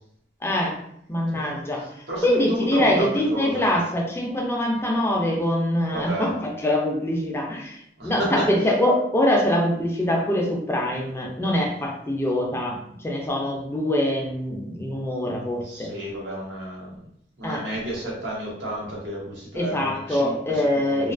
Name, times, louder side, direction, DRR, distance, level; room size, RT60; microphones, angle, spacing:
voice 1, 0.4-0.8 1.1-1.9 2.2-7.8 8.0-15.9 17.4-17.7 19.5-21.1, left 1 dB, 15° left, -1 dB, 0.3 m, -24 dB
voice 2, 2.1-3.6 5.9-6.3 8.0-8.4 15.6-17.0 17.4-21.1, right 1 dB, 75° right, -4 dB, 1.0 m, -31 dB
2.4 x 2.2 x 2.4 m, 0.71 s
head